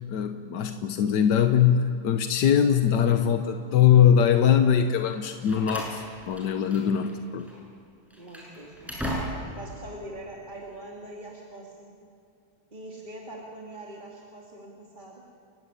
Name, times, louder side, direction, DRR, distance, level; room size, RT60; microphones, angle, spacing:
voice 1, 0.1-7.5, left 8 dB, 85° left, 7 dB, 1.6 m, -22 dB
Slam, 5.1-7.1 7.4-7.6 8.1-9.7, equal, ahead, 7.2 m, -36 dB
voice 2, 8.1-11.9 12.7-15.2, right 1 dB, 30° right, -3 dB, 2.7 m, -43 dB
30.0 x 17.0 x 9.9 m, 2.5 s
omnidirectional pair, 1.8 m